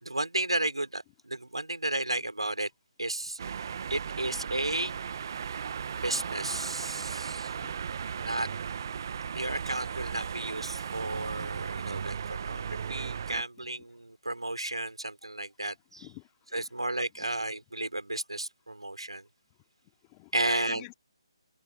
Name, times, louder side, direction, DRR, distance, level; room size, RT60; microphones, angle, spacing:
voice 1, 0.0-2.7 3.0-3.4 3.9-5.0 6.0-7.5 8.2-8.5 9.3-16.1 16.5-19.2 20.3-20.9, right 2 dB, 85° right, 5.9 m, -33 dB
sound 1, 3.4-13.4, right 7 dB, 45° right, 1.6 m, -36 dB
voice 2, 16.0-16.6 20.0-20.9, left 34 dB, 20° left, 2.9 m, -47 dB
figure-of-eight pair, 150°, 3 cm